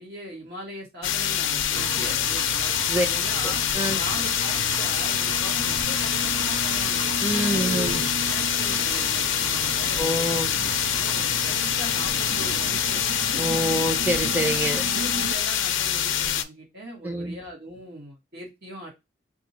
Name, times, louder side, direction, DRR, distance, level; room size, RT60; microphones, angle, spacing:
voice 1, 0.0-2.7 3.0-3.6 4.0-7.1 7.5-13.4 14.9-18.9, right 1 dB, 55° right, 1.7 m, -40 dB
sound 1, 1.0-16.4, left 10 dB, 85° left, 0.5 m, -25 dB
Engine, 1.8-15.3, right 5 dB, 85° right, 0.4 m, -35 dB
voice 2, 3.4-4.0 7.2-8.0 10.0-10.5 13.4-14.9 17.0-17.4, right 1 dB, 10° right, 0.7 m, -26 dB
2.9 x 2.6 x 4.1 m
head